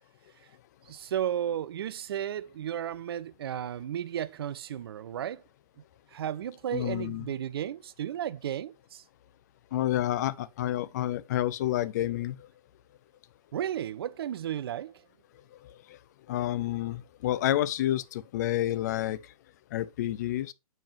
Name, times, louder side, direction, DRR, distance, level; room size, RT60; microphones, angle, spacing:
voice 1, 0.9-5.4 6.1-9.0 13.5-15.0, right 10 dB, 40° right, 0.4 m, -34 dB
voice 2, 6.7-7.3 9.7-12.4 16.3-19.2 19.7-20.5, left 13 dB, 30° left, 0.4 m, -29 dB
7.4 x 5.1 x 2.9 m
figure-of-eight pair, 120°, 19 cm